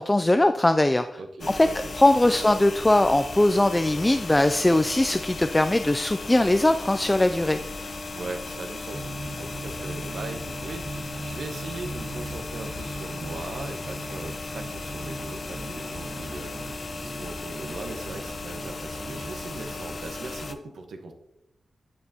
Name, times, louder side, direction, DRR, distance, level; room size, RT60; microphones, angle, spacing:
voice 1, 0.0-1.1 1.5-1.7 2.0-7.6, left 1 dB, 15° left, 9 dB, 0.3 m, -20 dB
voice 2, 1.2-1.9 2.3-2.4 8.1-21.1, right 3 dB, 85° right, 5 dB, 1.1 m, -39 dB
sound 1, 1.4-20.6, left 3 dB, 45° left, 0.7 m, -36 dB
sound 2, 8.9-20.0, right 2 dB, 45° right, 1.3 m, -40 dB
10.0 x 9.3 x 2.8 m, 0.87 s
wide cardioid pair, 135°, 0 cm